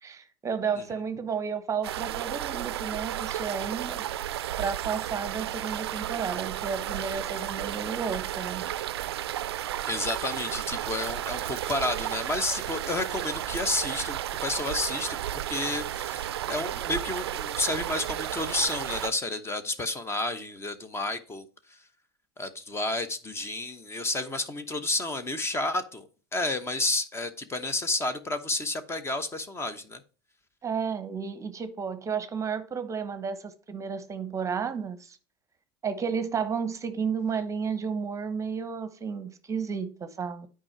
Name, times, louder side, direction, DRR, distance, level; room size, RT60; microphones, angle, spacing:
voice 1, 0.0-4.0 4.6-8.7 30.6-35.2 35.8-40.5, right 6 dB, 25° right, 0.9 m, -32 dB
sound 1, 1.8-19.1, right 12 dB, 90° right, 0.4 m, -33 dB
voice 2, 9.9-21.8 22.4-30.0, left 2 dB, 20° left, 1.0 m, -31 dB
8.7 x 4.9 x 4.5 m
hypercardioid pair, 95°, 13 cm